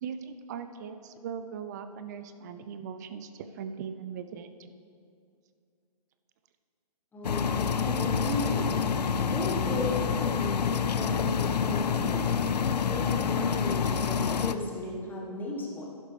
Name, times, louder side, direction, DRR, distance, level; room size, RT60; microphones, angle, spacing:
voice 1, 0.0-4.7, right 7 dB, 25° right, 9 dB, 0.4 m, -39 dB
voice 2, 7.1-8.7 9.3-12.3 12.9-15.8, left 1 dB, 10° left, -2 dB, 1.3 m, -35 dB
sound 1, 7.2-14.6, left 6 dB, 80° left, 0.5 m, -27 dB
12.0 x 11.0 x 3.3 m, 2.4 s
figure-of-eight pair, 135°, 21 cm